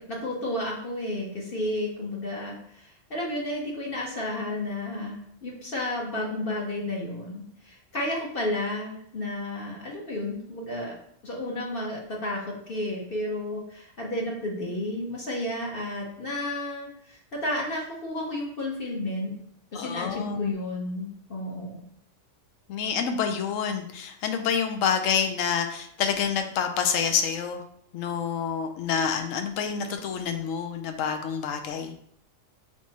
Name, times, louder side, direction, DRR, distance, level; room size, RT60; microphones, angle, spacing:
voice 1, 0.0-10.9 11.2-19.3 19.7-21.8, left 1 dB, 50° left, -3 dB, 1.0 m, -32 dB
voice 2, 19.7-20.5 22.7-27.6 27.9-32.0, left 7 dB, 75° left, 6 dB, 0.9 m, -28 dB
3.6 x 3.1 x 3.9 m, 0.68 s
omnidirectional pair, 1.4 m